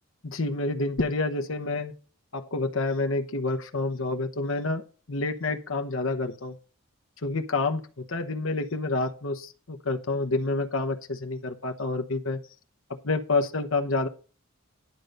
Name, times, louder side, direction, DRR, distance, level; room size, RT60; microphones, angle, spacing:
voice 1, 0.2-1.9 2.3-4.8 5.1-6.6 7.2-12.4 13.0-14.1, left 3 dB, 65° left, 6 dB, 1.0 m, -28 dB
11.0 x 3.9 x 6.6 m, 0.36 s
head